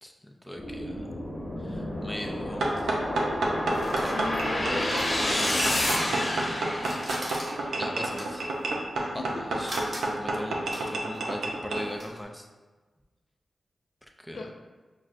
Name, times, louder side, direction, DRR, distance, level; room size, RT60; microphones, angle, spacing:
voice 1, 0.0-1.1 1.6-2.9 4.0-4.4 7.8-8.5 9.1-9.8 10.2-12.5 14.2-14.5, left 1 dB, 10° left, 2 dB, 0.4 m, -39 dB
sound 1, 0.5-7.8, left 1 dB, 45° left, 1.1 m, -30 dB
sound 2, 2.6-11.8, right 2 dB, 85° right, 0.5 m, -30 dB
sound 3, 3.0-6.4 6.7-12.2, right 1 dB, 60° right, 1.0 m, -42 dB
voice 2, 4.1-6.1 9.0-9.8 14.3-14.5, left 3 dB, 75° left, 3 dB, 0.4 m, -39 dB
6.1 x 2.1 x 2.5 m, 1.3 s
cardioid pair, 40°, 0 cm